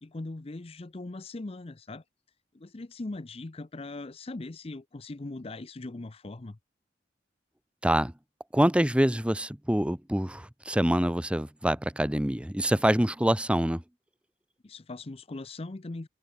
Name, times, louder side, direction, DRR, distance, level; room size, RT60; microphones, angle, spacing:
voice 1, 0.0-2.0 2.5-6.6 14.6-16.1, left 2 dB, 35° left, 0.6 m, -40 dB
voice 2, 8.5-13.8, equal, 5° right, 1.2 m, -25 dB
head